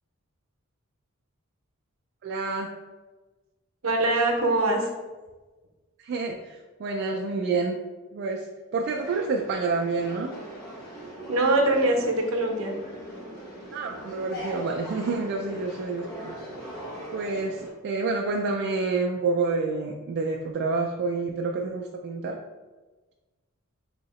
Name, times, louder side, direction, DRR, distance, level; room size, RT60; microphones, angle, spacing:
voice 1, 2.2-2.7 6.0-7.8 8.1-8.5 8.7-10.3 13.7-16.4 17.1-22.4, right 3 dB, 55° right, 0 dB, 0.3 m, -28 dB
voice 2, 3.8-4.9 11.3-12.8, right 2 dB, 70° right, 2 dB, 0.7 m, -23 dB
sound 1, 8.8-17.7, right 1 dB, 50° left, 1.3 m, -40 dB
2.8 x 2.8 x 4.1 m, 1.2 s
head